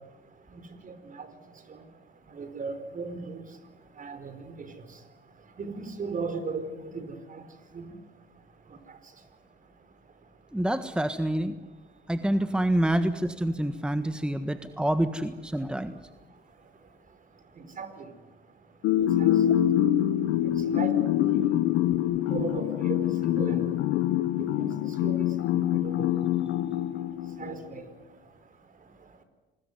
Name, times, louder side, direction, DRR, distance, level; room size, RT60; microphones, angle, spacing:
voice 1, 0.5-1.3 2.3-3.4 4.0-4.7 5.6-7.4 7.7-7.9 17.8-18.1 19.2-19.6 20.7-20.9 21.3-21.5 22.3-23.8 24.4-26.1 27.4-27.8, right 4 dB, 45° right, 11 dB, 4.7 m, -36 dB
voice 2, 10.5-11.6 12.1-16.0, right 1 dB, 5° right, 10 dB, 1.5 m, -27 dB
sound 1, 18.8-27.6, left 12 dB, 80° left, 1.1 m, -25 dB
27.5 x 20.5 x 9.7 m, 1.1 s
supercardioid pair, 80°, 19 cm